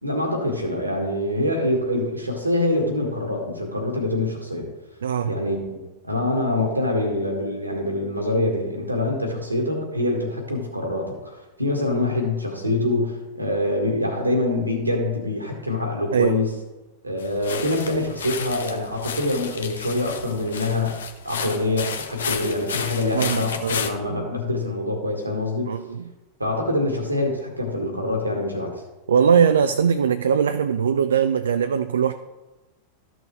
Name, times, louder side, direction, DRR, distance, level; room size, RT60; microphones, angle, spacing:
voice 1, 0.0-4.7 5.3-16.5 17.0-21.0 21.2-25.7 26.4-28.8, left 2 dB, 85° right, 2 dB, 1.7 m, -25 dB
voice 2, 5.0-5.4 16.1-16.4 23.1-23.7 24.1-24.3 25.7-26.1 29.1-32.1, right 7 dB, 65° right, 10 dB, 0.3 m, -21 dB
sound 1, 17.2-23.9, left 6 dB, 65° left, 0.7 m, -32 dB
13.5 x 6.3 x 3.3 m, 1.1 s
figure-of-eight pair, 90°, 0 cm